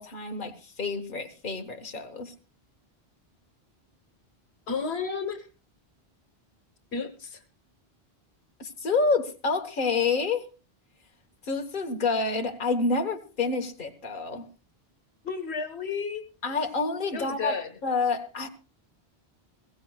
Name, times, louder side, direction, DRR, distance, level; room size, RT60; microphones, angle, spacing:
voice 1, 0.0-2.3 8.6-10.5 11.4-14.4 16.4-18.5, left 4 dB, 55° left, 1.6 m, -28 dB
voice 2, 4.7-5.5 6.9-7.4 15.2-16.2 17.1-17.7, left 5 dB, 90° left, 1.6 m, -32 dB
22.0 x 15.5 x 2.4 m
omnidirectional pair, 1.1 m